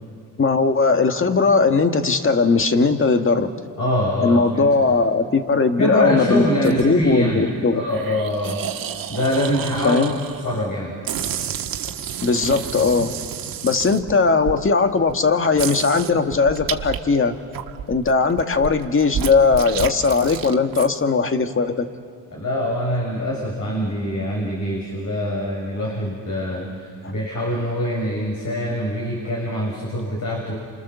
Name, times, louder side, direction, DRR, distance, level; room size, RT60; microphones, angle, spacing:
voice 1, 0.4-3.5 4.2-7.8 9.8-10.1 12.2-13.2 13.6-17.4 17.9-21.9, left 4 dB, 35° left, 6 dB, 1.9 m, -19 dB
voice 2, 3.8-4.7 5.8-10.0 10.4-11.0 22.3-30.5, equal, 50° left, -2 dB, 6.8 m, -24 dB
sound 1, 6.6-7.1 7.9-10.6 11.0-14.6 15.1-15.2 15.6-17.0 17.4-20.9, right 9 dB, 60° right, 1.5 m, -30 dB
29.0 x 26.5 x 7.0 m, 2.2 s
cardioid pair, 75°, 38 cm